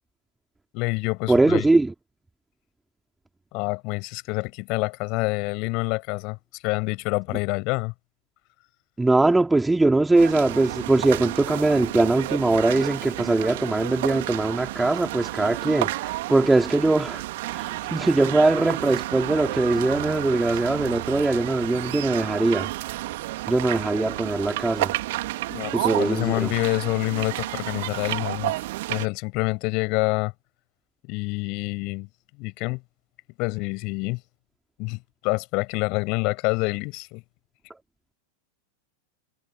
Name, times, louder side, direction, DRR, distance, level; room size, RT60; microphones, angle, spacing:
voice 1, 0.7-1.6 3.5-7.9 25.5-28.5 28.9-30.3 31.0-32.1 32.4-32.8 33.4-34.2 34.8-37.2, left 28 dB, 45° left, 6.7 m, -27 dB
voice 2, 1.3-1.9 9.0-17.2 17.5-22.7 23.5-24.9 25.7-26.5, right 2 dB, 5° right, 3.9 m, -21 dB
sound 1, 10.2-29.1, right 18 dB, 50° right, 2.7 m, -31 dB
figure-of-eight pair, 90°, 0 cm